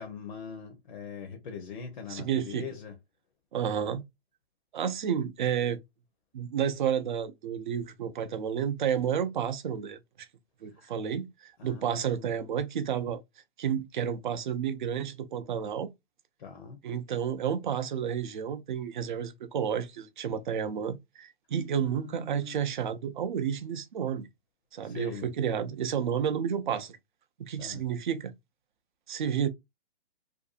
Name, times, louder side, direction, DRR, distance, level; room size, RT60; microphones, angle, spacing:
voice 1, 0.0-2.9 10.7-10.9 11.6-12.5 16.4-16.8 21.8-22.7 24.8-25.3 27.6-27.8, left 5 dB, 50° left, 0.6 m, -42 dB
voice 2, 2.1-2.6 3.5-4.0 4.7-5.8 6.3-10.3 10.6-13.2 13.6-15.9 16.8-24.3 24.7-27.0 27.4-28.3 29.1-29.5, right 8 dB, 50° right, 0.5 m, -31 dB
2.6 x 2.3 x 2.3 m
hypercardioid pair, 150°, 31 cm